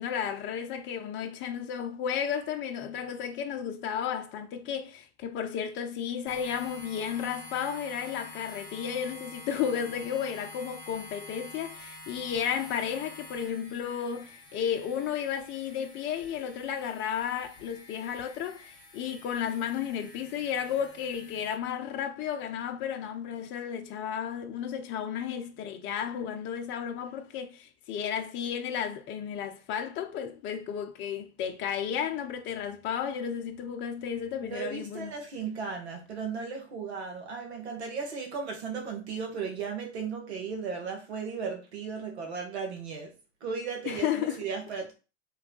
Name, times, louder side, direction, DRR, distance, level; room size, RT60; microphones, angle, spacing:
voice 1, 0.0-35.1 43.9-44.4, left 8 dB, 35° left, 0.6 m, -33 dB
sound 1, 6.3-21.6, left 2 dB, 10° left, 1.6 m, -48 dB
voice 2, 34.4-43.1 43.4-44.9, right 5 dB, 75° right, 1.3 m, -36 dB
3.4 x 3.2 x 3.8 m
hypercardioid pair, 95°, 33 cm